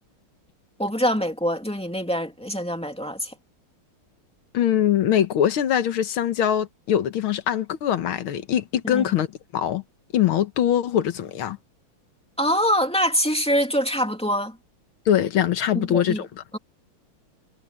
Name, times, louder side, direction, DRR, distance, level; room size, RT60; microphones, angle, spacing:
voice 1, 0.8-3.3 8.8-9.1 12.4-14.6 15.7-16.2, equal, 5° left, 2.3 m, -24 dB
voice 2, 4.5-9.3 9.5-9.8 10.1-11.6 15.1-16.3, left 10 dB, 80° left, 2.0 m, -22 dB
omnidirectional pair, 2.3 m